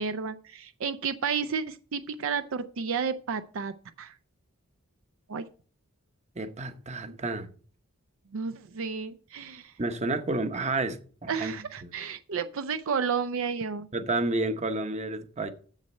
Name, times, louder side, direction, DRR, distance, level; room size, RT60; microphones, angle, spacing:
voice 1, 0.0-4.1 5.3-5.5 7.1-7.2 8.3-9.7 11.3-13.9, right 6 dB, 65° right, 0.5 m, -32 dB
voice 2, 6.4-7.5 9.8-11.5 11.8-11.9 13.9-15.5, right 2 dB, 35° right, 0.9 m, -30 dB
7.6 x 7.3 x 5.4 m
head